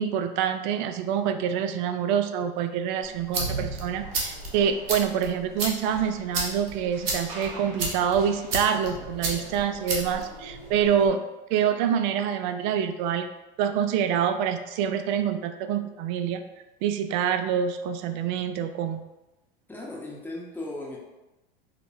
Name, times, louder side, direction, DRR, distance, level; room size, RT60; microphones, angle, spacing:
voice 1, 0.0-11.2 11.5-13.3 13.6-16.4 16.8-19.0, right 8 dB, 55° right, 8 dB, 0.4 m, -26 dB
sound 1, 3.0-11.1, right 2 dB, 80° right, 0.9 m, -33 dB
voice 2, 19.7-21.0, left 2 dB, 5° left, -4 dB, 0.8 m, -36 dB
4.9 x 2.1 x 2.7 m, 1.0 s
hypercardioid pair, 100°, 29 cm